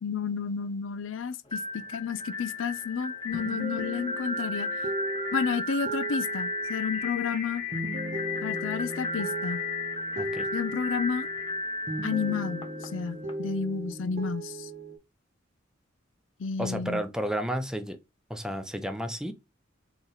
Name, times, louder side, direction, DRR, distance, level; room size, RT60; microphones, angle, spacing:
voice 1, 0.0-4.7 5.3-7.6 8.4-9.6 10.5-11.3 12.0-14.7 16.4-17.0, left 6 dB, 90° left, 0.5 m, -31 dB
sound 1, 1.5-13.3, left 2 dB, 25° left, 1.1 m, -34 dB
sound 2, 3.3-11.6 11.9-15.0, right 1 dB, 40° right, 0.8 m, -37 dB
voice 2, 10.2-10.5 16.6-18.0 18.3-19.3, equal, 5° right, 0.6 m, -32 dB
3.9 x 3.0 x 4.0 m
head